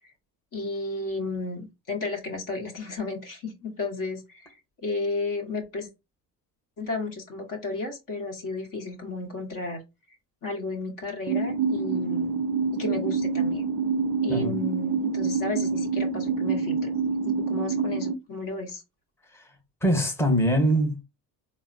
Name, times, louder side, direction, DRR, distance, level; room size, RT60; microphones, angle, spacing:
voice 1, 0.5-4.6 4.8-5.9 6.8-9.8 10.4-12.3 12.7-13.7 14.2-16.9 17.2-18.8, left 3 dB, 40° left, 1.1 m, -33 dB
sound 1, 11.3-18.1, right 5 dB, 45° right, 0.4 m, -26 dB
voice 2, 19.8-21.0, equal, 5° left, 1.1 m, -23 dB
3.9 x 2.1 x 2.6 m
hypercardioid pair, 60°, 50 cm